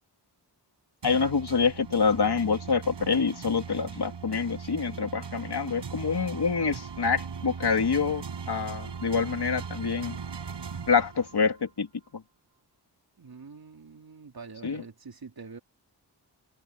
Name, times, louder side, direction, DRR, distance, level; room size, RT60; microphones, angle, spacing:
voice 1, 1.0-10.2 10.9-11.9 12.1-12.2 14.6-14.8, left 5 dB, 65° left, 2.7 m, -26 dB
sound 1, 1.0-11.6, right 6 dB, 90° right, 6.6 m, -39 dB
voice 2, 13.2-15.6, right 5 dB, 60° right, 3.5 m, -45 dB
wide cardioid pair, 65°, 42 cm